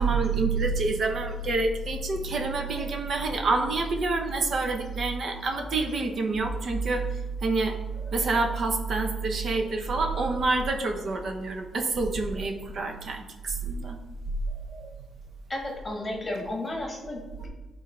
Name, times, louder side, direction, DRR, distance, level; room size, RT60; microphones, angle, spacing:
voice 1, 0.0-14.0 14.7-14.9, right 3 dB, 45° right, 4 dB, 0.8 m, -27 dB
voice 2, 15.5-17.5, left 1 dB, 15° left, -2 dB, 1.5 m, -33 dB
11.0 x 4.0 x 3.2 m, 1.1 s
wide cardioid pair, 165°, 0 cm